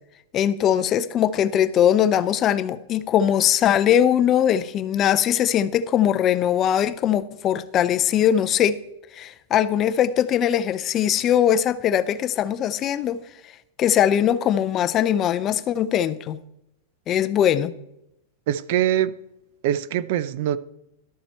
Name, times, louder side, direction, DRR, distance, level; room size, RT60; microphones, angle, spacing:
voice 1, 0.3-8.8 9.1-13.2 13.8-16.4 17.1-17.7, left 10 dB, 20° left, 0.5 m, -21 dB
voice 2, 18.5-19.2 19.6-20.6, right 11 dB, 45° right, 0.5 m, -23 dB
12.5 x 7.3 x 4.3 m
supercardioid pair, 175°, 0 cm